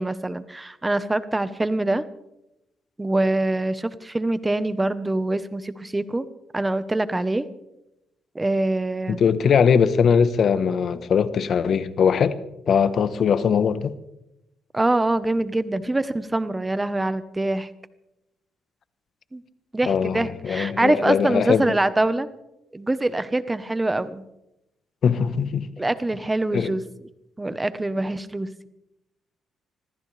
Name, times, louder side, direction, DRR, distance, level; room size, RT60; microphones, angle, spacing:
voice 1, 0.0-2.0 3.0-7.4 8.3-9.2 14.7-17.7 19.3-19.4 19.7-22.3 22.7-24.2 25.8-26.8 27.4-28.5, right 2 dB, 15° right, 1.0 m, -24 dB
voice 2, 9.1-12.4 12.7-13.9 19.9-21.7 25.0-25.7 26.5-26.8, left 7 dB, 60° left, 1.1 m, -21 dB
25.0 x 15.0 x 3.4 m
cardioid pair, 90°, 0 cm